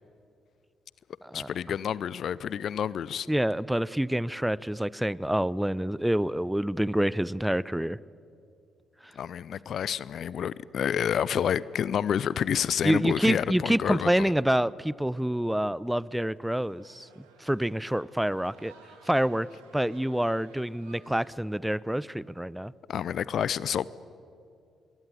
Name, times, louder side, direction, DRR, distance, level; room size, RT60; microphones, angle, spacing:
voice 1, 1.3-3.3 9.2-14.3 22.9-23.9, left 8 dB, 55° left, 21 dB, 0.6 m, -29 dB
voice 2, 3.3-8.0 12.8-18.7 19.1-19.5 19.7-22.7, right 1 dB, 5° right, 21 dB, 0.7 m, -27 dB
sound 1, 16.1-21.3, right 5 dB, 75° right, 2.6 m, -57 dB
26.0 x 22.0 x 9.7 m, 2.5 s
figure-of-eight pair, 40°, 0 cm